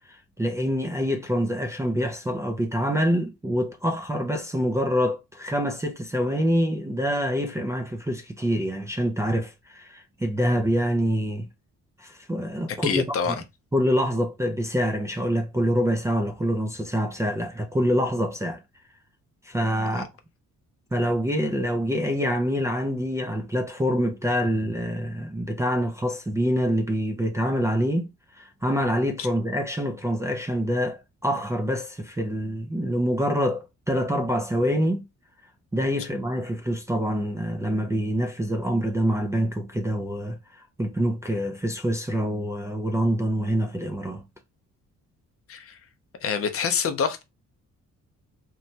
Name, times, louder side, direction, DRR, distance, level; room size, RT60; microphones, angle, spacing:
voice 1, 0.1-11.5 12.0-13.4 13.7-18.6 19.4-20.1 20.9-35.1 35.7-44.2, equal, 10° right, 0.3 m, -26 dB
voice 2, 12.7-13.3 19.9-20.0 45.5-45.8 46.2-47.2, left 6 dB, 50° left, 0.5 m, -26 dB
3.0 x 2.2 x 2.6 m
cardioid pair, 135°, 30 cm